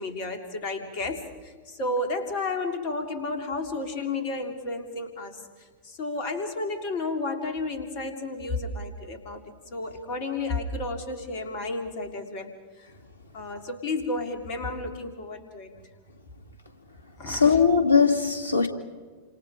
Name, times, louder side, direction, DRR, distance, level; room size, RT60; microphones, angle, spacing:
voice 1, 0.0-5.4 5.8-12.5 13.3-15.7 17.2-17.6, left 2 dB, 45° left, 3.3 m, -32 dB
voice 2, 17.3-18.7, left 5 dB, 90° right, 2.3 m, -20 dB
29.0 x 26.5 x 5.1 m
figure-of-eight pair, 90°, 0 cm